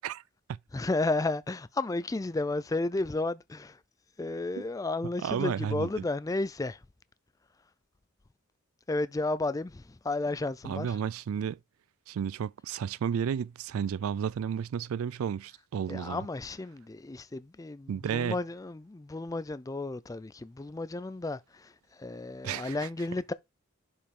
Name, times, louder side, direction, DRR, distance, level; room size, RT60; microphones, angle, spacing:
voice 1, 0.7-3.8 4.2-6.8 8.9-11.0 15.9-23.3, left 2 dB, 15° left, 0.4 m, -33 dB
voice 2, 5.2-6.0 10.6-11.6 12.1-16.3 17.9-18.4 22.4-22.9, right 8 dB, 85° right, 0.3 m, -32 dB
6.8 x 5.0 x 3.7 m
head